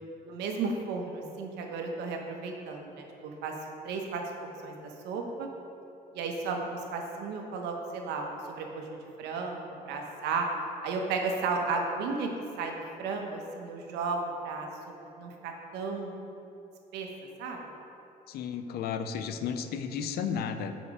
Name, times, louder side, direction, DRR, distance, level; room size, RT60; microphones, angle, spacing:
voice 1, 0.2-3.5 3.8-4.2 4.6-4.8 5.0-5.5 6.1-8.9 9.2-10.5 10.8-12.3 12.6-14.7 15.2-16.2 16.9-17.1 17.4-17.6, right 4 dB, 85° right, 2 dB, 1.0 m, -34 dB
voice 2, 18.3-20.7, left 7 dB, 70° left, 9 dB, 0.5 m, -33 dB
7.2 x 5.1 x 4.8 m, 2.9 s
cardioid pair, 110°, 17 cm